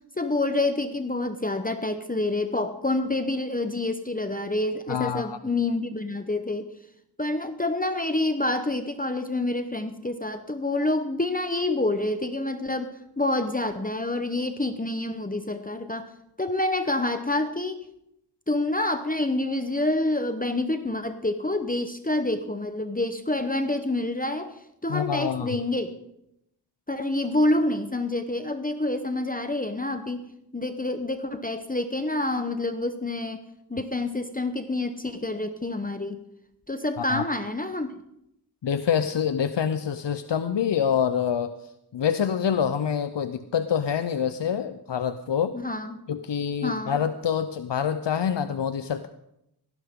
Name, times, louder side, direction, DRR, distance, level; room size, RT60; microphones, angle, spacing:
voice 1, 0.2-6.7 7.2-16.1 16.4-17.8 18.5-25.9 26.9-30.3 30.5-33.4 33.7-36.2 36.7-37.9 45.5-46.0 46.6-47.0, left 2 dB, 20° left, 8 dB, 0.9 m, -27 dB
voice 2, 4.9-5.4 24.9-25.5 37.0-37.2 38.6-41.5 41.9-45.6 46.1-49.1, left 8 dB, 85° left, 11 dB, 0.7 m, -26 dB
18.0 x 15.0 x 3.7 m, 0.81 s
wide cardioid pair, 75°, 42 cm